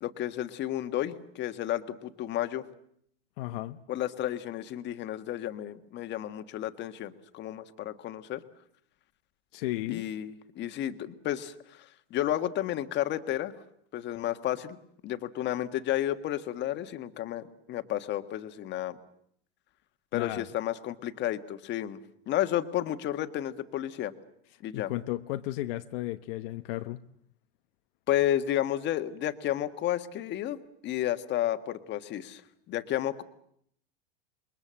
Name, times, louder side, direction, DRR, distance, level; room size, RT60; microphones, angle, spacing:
voice 1, 0.0-2.6 3.9-8.4 9.9-13.5 13.9-14.8 15.0-19.0 20.1-22.0 22.3-24.1 24.6-24.9 28.1-30.6 30.8-32.4 32.7-33.2, left 12 dB, 35° left, 9 dB, 1.6 m, -32 dB
voice 2, 3.4-3.8 9.5-10.0 20.1-20.5 24.7-27.0, left 16 dB, 65° left, 8 dB, 1.0 m, -34 dB
28.5 x 22.0 x 7.6 m, 0.69 s
supercardioid pair, 140°, 31 cm